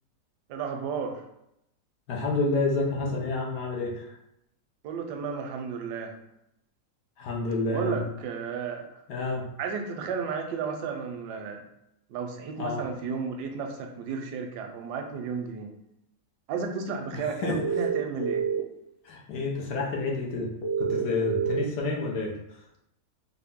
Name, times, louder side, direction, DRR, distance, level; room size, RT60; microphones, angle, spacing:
voice 1, 0.5-1.2 4.8-6.2 7.7-8.9 9.6-11.6 12.1-15.7 16.5-18.5, right 5 dB, 85° right, 4 dB, 1.2 m, -33 dB
voice 2, 2.1-4.2 7.2-8.0 9.1-9.4 12.6-12.8 17.4-17.6 19.0-20.5 20.8-22.3, left 3 dB, 85° left, -2 dB, 1.4 m, -29 dB
sound 1, 17.6-18.6 20.6-21.6, right 6 dB, 65° left, 0.7 m, -27 dB
4.2 x 2.1 x 3.5 m, 0.81 s
omnidirectional pair, 1.7 m